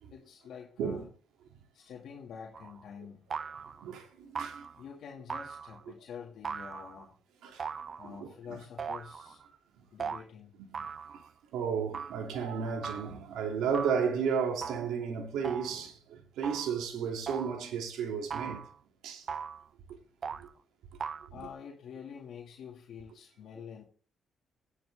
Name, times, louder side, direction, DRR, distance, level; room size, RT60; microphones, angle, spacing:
voice 1, 0.1-1.0 1.7-3.2 4.8-7.2 8.0-9.4 9.9-10.5 21.3-23.8, left 7 dB, 70° left, 2.3 m, -47 dB
sound 1, 2.5-2.8 3.3-3.9 4.4-4.8 5.3-5.9 6.4-7.1 7.6-8.3 8.8-9.3 10.0-10.2 10.7-11.3 11.9-12.2 12.8-13.2 13.7-14.1 14.6-15.0 15.4-15.9 16.4-16.8 17.3-17.7 18.3-18.8 19.3-19.7 20.2-20.5 21.0-21.3, right 6 dB, 45° right, 0.5 m, -39 dB
voice 2, 3.6-4.7 7.4-7.7 8.0-8.6 10.7-10.9 11.5-18.7 19.0-19.3 20.4-20.5 21.3-21.5, right 6 dB, 85° right, 2.8 m, -33 dB
10.5 x 9.8 x 3.6 m
cardioid pair, 90°, 0 cm